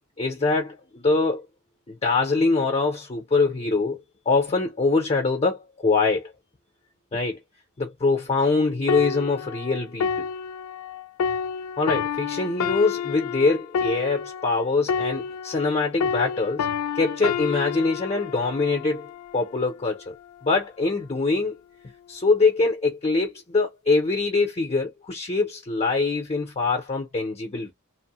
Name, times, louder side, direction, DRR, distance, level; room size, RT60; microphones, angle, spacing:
voice 1, 0.2-1.5 1.9-4.0 4.3-6.3 7.1-7.4 7.8-10.3 11.8-16.7 16.9-20.1 20.4-21.6 22.1-27.7, left 3 dB, 30° left, 0.5 m, -23 dB
sound 1, 8.9-15.7 16.0-19.6 20.2-20.4, left 6 dB, 90° left, 0.4 m, -29 dB
3.0 x 2.0 x 2.8 m
head